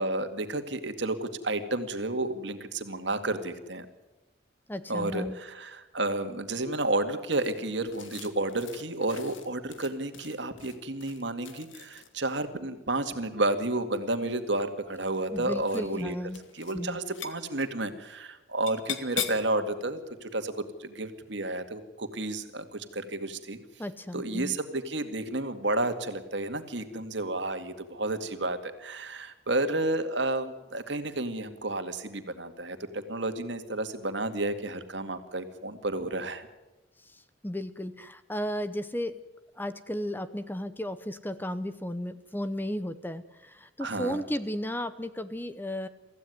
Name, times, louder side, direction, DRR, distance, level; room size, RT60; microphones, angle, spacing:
voice 1, 0.0-3.9 4.9-16.1 16.5-23.6 24.1-36.5 43.8-44.2, right 2 dB, 70° right, 8 dB, 2.1 m, -31 dB
voice 2, 4.7-5.4 15.3-16.4 16.7-17.0 23.8-24.6 37.0-39.2 39.6-45.9, equal, 10° left, 12 dB, 0.7 m, -34 dB
sound 1, 7.3-12.3 13.6-14.2 14.9-15.3 15.6-16.0 16.3-16.8 17.0-17.7 18.7-19.5, left 8 dB, 85° left, 2.0 m, -41 dB
24.0 x 15.0 x 9.6 m, 1.1 s
head